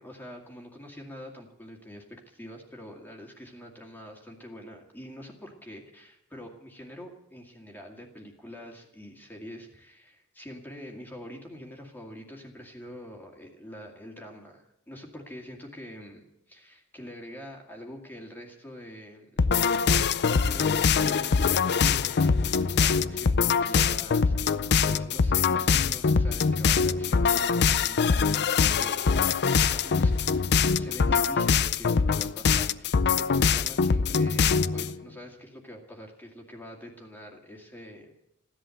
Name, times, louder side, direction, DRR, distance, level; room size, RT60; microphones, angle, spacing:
voice 1, 0.0-16.2 16.5-19.4 20.2-24.6 24.8-30.1 30.7-38.1, equal, 10° left, 0 dB, 2.2 m, -45 dB
sound 1, 19.4-34.9, left 5 dB, 50° left, 0.6 m, -23 dB
15.5 x 11.5 x 7.8 m, 0.84 s
head